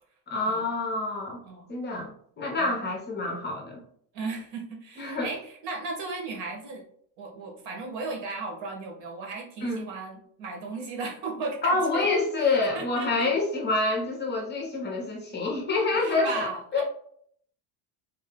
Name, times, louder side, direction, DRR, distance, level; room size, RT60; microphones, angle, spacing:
voice 1, 0.3-1.4 1.7-3.8 5.0-5.3 9.6-9.9 11.6-16.8, left 3 dB, 20° left, 0 dB, 0.7 m, -27 dB
voice 2, 4.1-6.8 7.2-12.1 12.4-13.3 16.0-16.8, right 3 dB, 70° right, 0 dB, 1.4 m, -36 dB
3.7 x 2.2 x 3.7 m, 0.63 s
cardioid pair, 160°, 46 cm